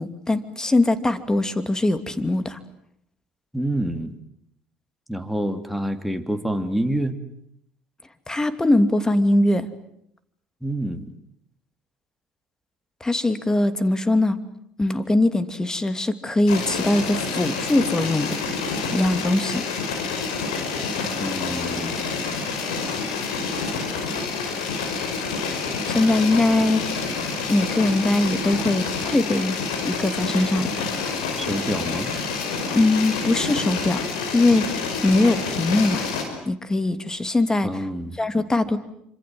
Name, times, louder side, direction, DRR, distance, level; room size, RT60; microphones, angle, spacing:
voice 1, 0.0-2.6 8.3-9.7 13.0-14.4 14.8-18.4 18.9-19.6 25.9-26.9 27.5-29.6 29.8-30.8 32.7-34.0 34.3-36.0 36.5-37.7 38.2-38.8, left 2 dB, 15° left, 12 dB, 2.8 m, -21 dB
voice 2, 3.5-4.2 5.1-7.2 10.6-11.1 21.2-22.0 31.4-32.1 37.6-38.2, right 1 dB, ahead, 6 dB, 3.3 m, -27 dB
sound 1, 16.5-36.2, left 4 dB, 85° left, 5.5 m, -28 dB
27.5 x 26.0 x 7.9 m, 0.73 s
hypercardioid pair, 70°, 4 cm